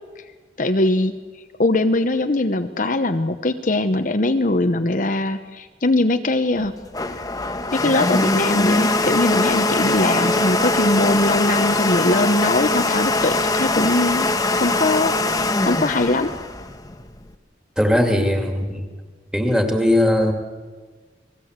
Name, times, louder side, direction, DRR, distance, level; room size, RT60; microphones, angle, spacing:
voice 1, 0.6-1.1 1.6-6.7 7.7-16.3, left 2 dB, 45° left, 8 dB, 0.9 m, -21 dB
Domestic sounds home sounds, 6.6-17.3, left 2 dB, 20° left, 1.3 m, -21 dB
voice 2, 17.8-18.8 19.3-20.3, left 1 dB, 5° right, 4 dB, 2.5 m, -19 dB
30.0 x 20.0 x 8.1 m, 1.5 s
head